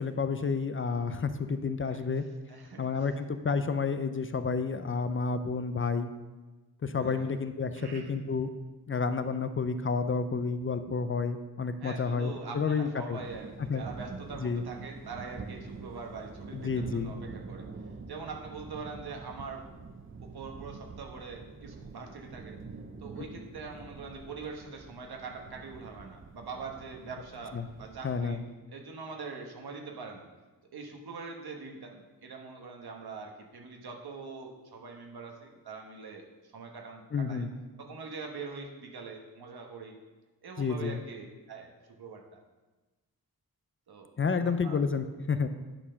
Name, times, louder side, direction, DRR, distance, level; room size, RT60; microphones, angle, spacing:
voice 1, 0.0-2.2 2.8-6.1 6.8-8.5 8.9-13.2 13.7-13.8 14.4-14.6 16.5-17.1 27.5-27.7 28.0-28.4 37.1-37.5 40.6-41.0 44.2-45.5, left 5 dB, 35° left, 10 dB, 0.5 m, -30 dB
voice 2, 2.5-2.9 6.9-7.3 7.7-8.2 11.8-17.7 18.1-19.7 20.2-22.6 23.0-28.4 28.7-30.3 30.7-36.3 36.5-37.5 37.8-40.0 40.4-41.7 42.0-42.4 43.9-44.1 44.6-44.8, right 4 dB, 85° right, 2 dB, 1.3 m, -43 dB
sound 1, 13.2-28.4, right 4 dB, 35° right, 0.6 m, -46 dB
9.9 x 4.4 x 5.6 m, 1.2 s
wide cardioid pair, 120°, 37 cm